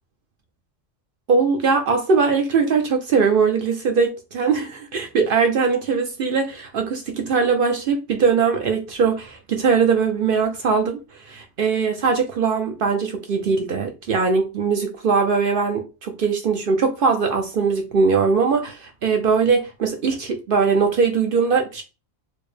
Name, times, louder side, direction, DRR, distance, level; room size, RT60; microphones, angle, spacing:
voice 1, 1.3-11.0 11.3-21.8, right 5 dB, 60° right, 0.6 m, -21 dB
4.3 x 2.0 x 3.2 m
omnidirectional pair, 1.3 m